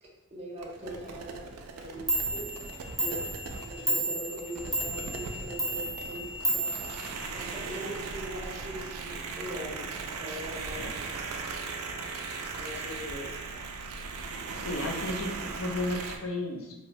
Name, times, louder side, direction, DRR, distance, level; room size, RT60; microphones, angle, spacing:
voice 1, 0.0-2.5 2.9-6.8 7.3-9.9 10.1-11.4 12.5-13.4, right 1 dB, 30° right, -5 dB, 0.6 m, -41 dB
sound 1, 0.6-16.2, right 4 dB, 85° right, 0.3 m, -38 dB
Clock, 1.8-1.9 2.1-7.7, right 2 dB, ahead, 0.3 m, -32 dB
voice 2, 14.5-16.7, left 1 dB, 65° left, 2 dB, 0.5 m, -34 dB
2.9 x 2.0 x 2.5 m, 0.99 s
head